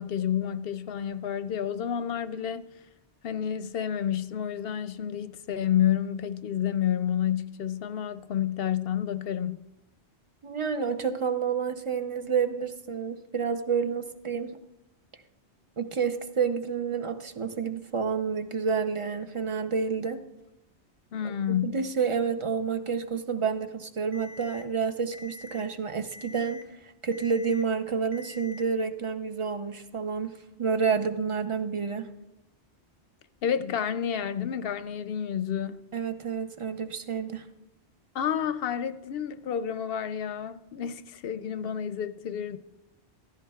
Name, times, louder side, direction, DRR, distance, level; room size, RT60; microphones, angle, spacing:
voice 1, 0.0-2.7 3.2-9.6 21.1-21.8 33.4-35.8 38.1-42.6, left 9 dB, 65° left, 0.7 m, -30 dB
voice 2, 10.4-14.5 15.8-20.2 21.2-21.4 21.6-30.3 30.6-32.1 35.9-37.4, right 6 dB, 35° right, 0.6 m, -29 dB
Alarm, 24.1-24.6 25.1-25.6 26.1-26.6 27.1-27.6 28.1-28.6, left 2 dB, 85° right, 1.3 m, -46 dB
15.0 x 13.5 x 2.3 m
omnidirectional pair, 1.1 m